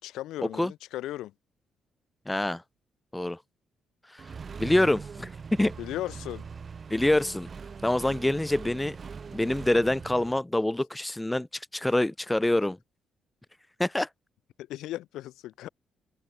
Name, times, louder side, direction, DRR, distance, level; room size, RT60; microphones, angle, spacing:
voice 1, 0.0-1.3 5.8-6.5 14.6-15.7, left 14 dB, 85° left, 5.8 m, -36 dB
voice 2, 2.3-2.6 3.1-3.4 4.1-4.2 4.6-5.7 6.9-7.5 7.8-9.0 9.3-12.8 13.8-14.1, left 1 dB, 10° left, 1.0 m, -26 dB
Accelerating revving vroom, 4.2-10.4, right 5 dB, 40° right, 4.0 m, -41 dB
cardioid pair, 90°, 0 cm